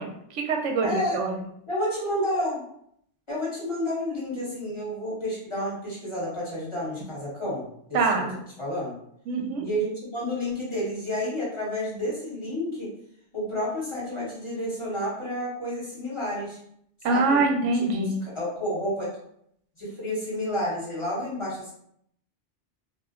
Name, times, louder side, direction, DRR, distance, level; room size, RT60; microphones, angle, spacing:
voice 1, 0.0-1.3 7.9-8.4 9.3-9.7 17.0-18.2, right 3 dB, 85° right, 2 dB, 0.9 m, -25 dB
voice 2, 0.8-1.2 1.7-2.6 3.3-8.0 8.6-8.9 9.6-12.9 13.3-16.6 17.1-17.4 17.9-18.1 18.3-19.1 19.8-21.7, left 1 dB, 25° left, -8 dB, 1.3 m, -30 dB
2.5 x 2.2 x 3.6 m, 0.70 s
omnidirectional pair, 1.2 m